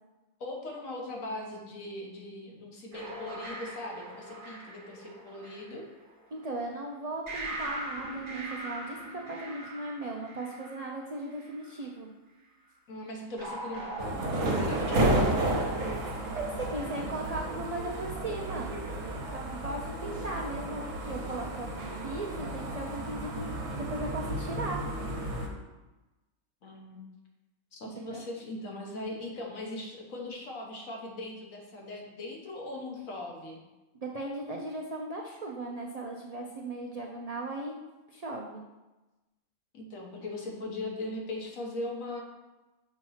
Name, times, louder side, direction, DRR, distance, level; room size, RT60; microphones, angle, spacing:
voice 1, 0.4-5.8 12.9-15.4 26.6-27.0 27.7-33.6 39.7-42.2, left 2 dB, 65° left, -1 dB, 1.5 m, -39 dB
sound 1, 2.9-6.6 7.3-11.7 13.4-17.7, right 2 dB, 40° right, 0.9 m, -41 dB
voice 2, 6.3-12.1 16.4-18.7 19.0-24.8 28.0-28.2 34.0-37.8 38.1-38.6, right 2 dB, 85° right, -1 dB, 0.3 m, -37 dB
sound 2, 14.0-25.5, right 1 dB, 60° right, 1.4 m, -32 dB
6.7 x 3.0 x 5.5 m, 1.1 s
omnidirectional pair, 1.5 m